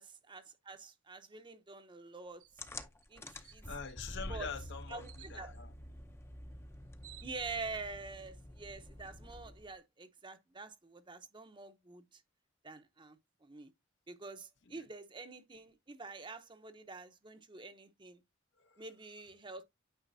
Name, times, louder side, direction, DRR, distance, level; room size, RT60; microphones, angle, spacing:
voice 1, 0.0-2.4 3.1-3.2 3.5-3.6 4.3-4.5 4.9-5.5 7.2-12.2 12.6-13.7 14.1-18.2 18.8-19.6, right 3 dB, 25° right, 0.8 m, -47 dB
sound 1, 2.4-2.6 3.0-3.1 3.4-4.0 5.0-5.4 6.5-6.6 6.8-7.8, right 14 dB, 80° right, 0.6 m, -57 dB
sound 2, 2.6-9.8, left 1 dB, 10° left, 0.6 m, -48 dB
voice 2, 3.3-5.7 14.7-14.8 18.6-18.8, left 5 dB, 60° left, 0.9 m, -45 dB
9.2 x 5.1 x 2.7 m
head